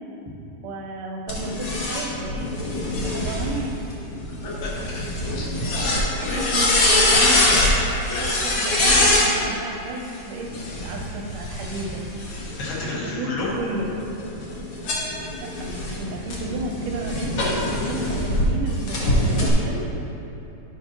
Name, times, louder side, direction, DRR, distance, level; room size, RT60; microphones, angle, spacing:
voice 1, 0.6-2.5 3.0-3.8 6.4-7.5 7.8-10.5 10.8-12.0 13.2-13.9 15.4-19.9, right 2 dB, 75° right, 0 dB, 2.2 m, -33 dB
sound 1, 1.3-9.3 10.4-12.8 13.4-18.4 18.9-19.5, left 1 dB, 60° left, 1.4 m, -23 dB
voice 2, 4.4-5.0 5.3-5.5 6.2-6.6 8.0-8.5 12.6-13.6, left 2 dB, 80° left, -6 dB, 3.1 m, -31 dB
11.5 x 5.3 x 2.9 m, 2.9 s
omnidirectional pair, 3.8 m